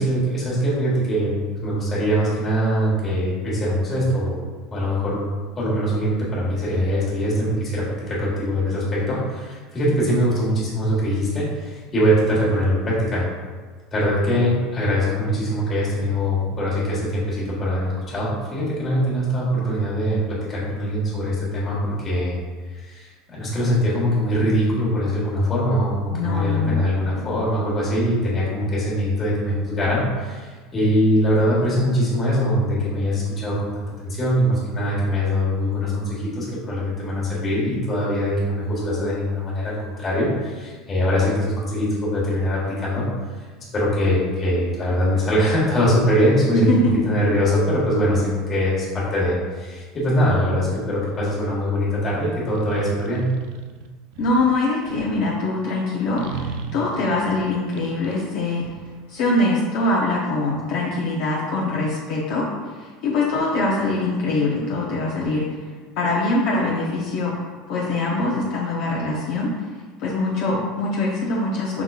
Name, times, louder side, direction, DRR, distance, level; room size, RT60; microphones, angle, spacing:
voice 1, 0.0-4.4 4.7-5.2 5.6-13.3 13.9-22.4 22.7-43.0 43.4-43.5 43.7-53.3, equal, 20° left, -6 dB, 1.4 m, -22 dB
voice 2, 26.1-26.9 46.5-46.9 54.2-58.7 59.1-62.5 62.8-65.5 66.0-69.5 70.0-71.8, left 2 dB, 55° left, -5 dB, 0.7 m, -23 dB
sound 1, 50.6-51.3 52.5-55.3 56.2-59.4, right 6 dB, 60° right, 0.4 m, -37 dB
5.9 x 3.8 x 2.4 m, 1.5 s
cardioid pair, 165°, 0 cm